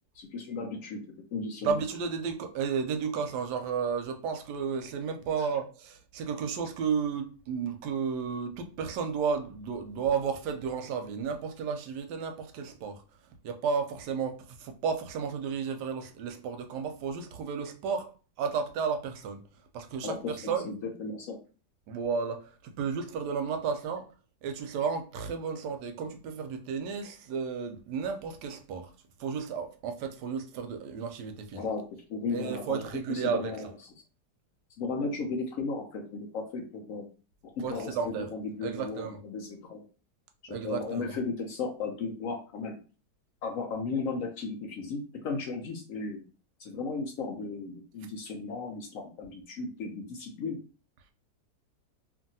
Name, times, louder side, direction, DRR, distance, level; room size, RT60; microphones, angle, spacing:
voice 1, 0.2-1.0 1.3-1.8 20.0-21.4 31.5-31.8 32.1-32.8 33.1-33.7 34.8-37.0 37.7-39.9 40.6-42.8 43.4-46.2 46.6-50.6, left 4 dB, 70° left, 0.8 m, -35 dB
voice 2, 1.6-13.0 13.4-18.1 18.4-19.4 19.7-20.7 21.9-24.1 24.4-28.9 29.2-31.6 32.3-33.7 37.6-38.3 38.6-39.2 40.5-41.2, right 6 dB, 90° right, 1.2 m, -33 dB
2.7 x 2.6 x 2.6 m
omnidirectional pair, 1.7 m